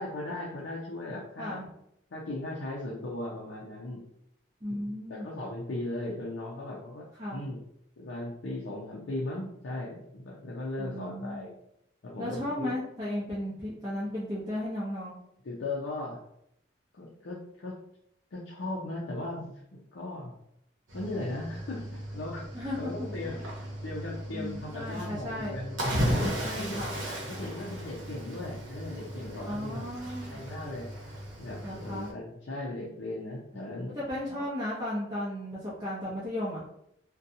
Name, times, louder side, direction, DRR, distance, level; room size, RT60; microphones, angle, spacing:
voice 1, 0.0-1.7 2.1-4.0 4.8-7.6 8.0-11.5 12.0-12.8 15.4-16.2 16.9-17.8 18.3-20.3 20.9-23.4 23.8-25.8 26.0-29.9 30.3-30.9 31.4-34.0 34.3-34.4, left 2 dB, 75° left, -5 dB, 0.5 m, -38 dB
voice 2, 4.6-5.3 7.2-7.5 10.8-11.5 12.2-15.2 22.5-23.1 24.3-25.6 26.4-27.0 29.4-30.4 31.6-32.1 33.9-36.6, left 1 dB, 20° right, -9 dB, 0.6 m, -35 dB
Cricket / Waves surf, 20.9-32.1, equal, 85° right, 0.8 m, -36 dB
2.6 x 2.2 x 2.6 m, 0.76 s
head